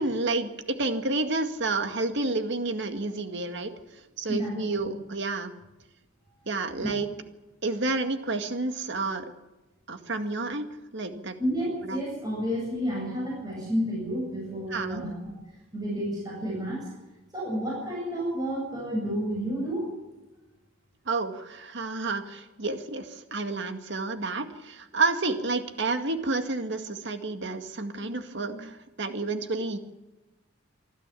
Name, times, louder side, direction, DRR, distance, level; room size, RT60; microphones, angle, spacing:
voice 1, 0.0-5.5 6.5-7.1 7.6-9.3 9.9-10.7 10.9-11.4 11.9-12.0 14.7-15.0 21.1-29.8, right 3 dB, 55° right, 7 dB, 2.1 m, -30 dB
voice 2, 4.3-4.9 6.8-7.0 11.4-15.1 15.7-16.9 17.3-19.9, equal, 20° right, -4 dB, 7.9 m, -30 dB
24.5 x 13.5 x 8.5 m, 1.1 s
head